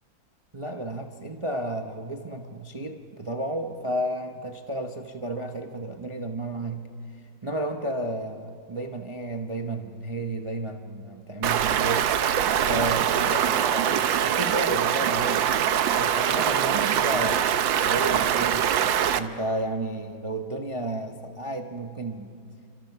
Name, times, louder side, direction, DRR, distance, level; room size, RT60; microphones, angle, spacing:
voice 1, 0.5-6.9 7.4-12.1 12.6-15.5 15.9-18.7 19.2-22.4, right 1 dB, 30° right, 4 dB, 0.6 m, -32 dB
Stream, 11.4-19.2, right 9 dB, 70° right, 1.5 m, -23 dB
29.5 x 26.0 x 5.9 m, 2.3 s
omnidirectional pair, 2.2 m